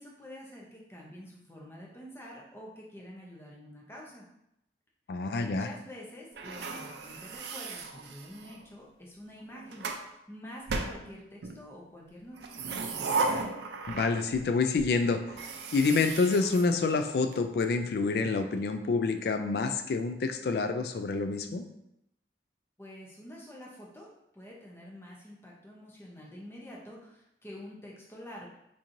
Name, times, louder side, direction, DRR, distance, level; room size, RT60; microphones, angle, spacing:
voice 1, 0.0-4.3 5.3-12.8 22.8-24.1 24.3-28.5, equal, 15° left, -3 dB, 0.6 m, -47 dB
voice 2, 5.1-5.7 13.9-15.2 15.7-21.6, left 4 dB, 60° left, 7 dB, 0.3 m, -27 dB
sound 1, 6.4-8.6 9.4-10.0 10.7-11.6 12.3-14.5 14.8-14.9 15.3-17.3, right 3 dB, 70° right, 0.4 m, -35 dB
3.8 x 3.0 x 2.6 m, 0.81 s
head